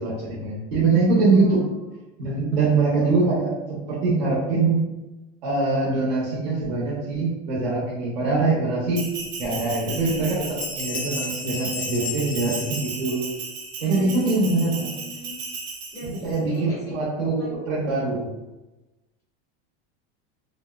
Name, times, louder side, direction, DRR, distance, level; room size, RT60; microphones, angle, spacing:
voice 1, 0.0-1.6 2.2-4.8 5.4-9.0 9.4-13.2 13.8-14.9 16.1-18.2, right 3 dB, 85° right, -6 dB, 0.9 m, -23 dB
voice 2, 1.3-1.8 2.4-2.7 13.8-15.3 15.9-17.0 17.4-17.5, equal, 10° left, -5 dB, 0.4 m, -38 dB
Bell, 8.9-16.4, right 4 dB, 50° right, 0.5 m, -35 dB
Bell 2, 9.4-9.5 10.0-10.2 10.5-13.6, left 4 dB, 70° left, 0.6 m, -34 dB
2.7 x 2.0 x 2.3 m, 1.0 s
supercardioid pair, 170°, 31 cm